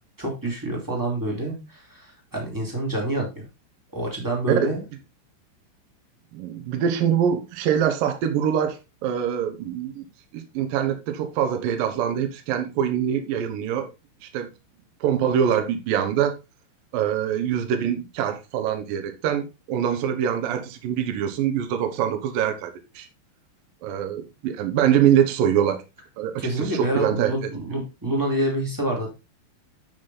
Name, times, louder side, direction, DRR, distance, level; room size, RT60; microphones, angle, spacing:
voice 1, 0.2-3.4 3.9-4.8 26.4-29.1, right 1 dB, 10° right, 1.0 m, -27 dB
voice 2, 6.3-10.1 10.3-13.9 14.2-14.5 15.0-16.3 16.9-23.1 23.8-25.8 26.2-27.3, right 9 dB, 70° right, 2.2 m, -24 dB
8.4 x 6.0 x 4.1 m
omnidirectional pair, 5.7 m